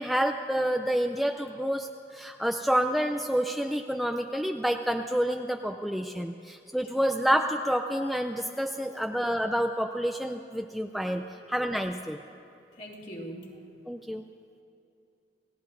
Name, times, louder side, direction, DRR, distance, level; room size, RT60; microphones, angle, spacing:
voice 1, 0.0-12.2 13.9-14.2, equal, ahead, 4 dB, 0.4 m, -28 dB
voice 2, 6.1-6.5 6.9-7.0 8.8-9.0 11.2-11.5 12.8-13.6, equal, 45° left, -3 dB, 2.7 m, -44 dB
29.5 x 18.0 x 2.6 m, 2.6 s
head